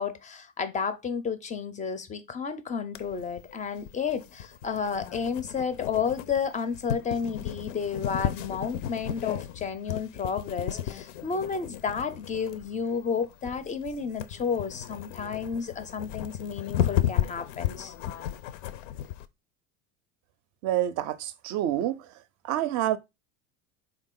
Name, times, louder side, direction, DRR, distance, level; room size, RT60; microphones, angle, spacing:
voice 1, 0.0-17.9, left 6 dB, 20° left, 0.4 m, -31 dB
sound 1, 2.9-19.2, left 11 dB, 75° left, 0.5 m, -34 dB
voice 2, 20.6-22.0 22.5-23.0, right 12 dB, 50° right, 0.5 m, -27 dB
3.7 x 2.5 x 3.6 m
supercardioid pair, 100°, 39 cm